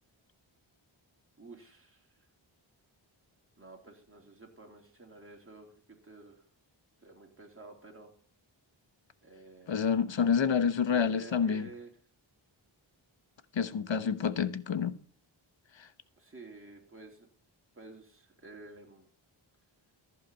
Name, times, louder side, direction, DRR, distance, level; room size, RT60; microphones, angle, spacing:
voice 1, 1.4-2.1 3.6-6.4 7.0-8.1 9.2-9.8 10.8-11.9 16.2-17.3 17.7-19.1, right 3 dB, 25° right, 2.9 m, -51 dB
voice 2, 9.7-11.7 13.5-14.9, left 6 dB, 70° left, 1.0 m, -28 dB
14.5 x 5.0 x 7.4 m
cardioid pair, 50°, 47 cm